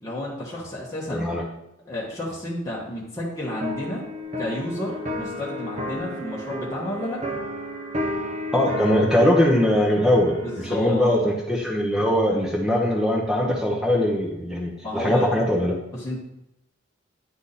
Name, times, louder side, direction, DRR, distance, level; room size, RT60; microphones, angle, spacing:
voice 1, 0.0-1.3 1.9-4.0 4.4-7.4 10.4-11.3 14.8-15.3 15.9-16.2, left 1 dB, 15° left, -7 dB, 1.3 m, -31 dB
voice 2, 1.1-1.4 8.5-10.4 10.7-15.8, left 1 dB, 5° right, -1 dB, 0.9 m, -21 dB
sound 1, 3.5-10.7, left 1 dB, 35° right, 1.0 m, -32 dB
9.9 x 3.6 x 4.1 m, 0.84 s
head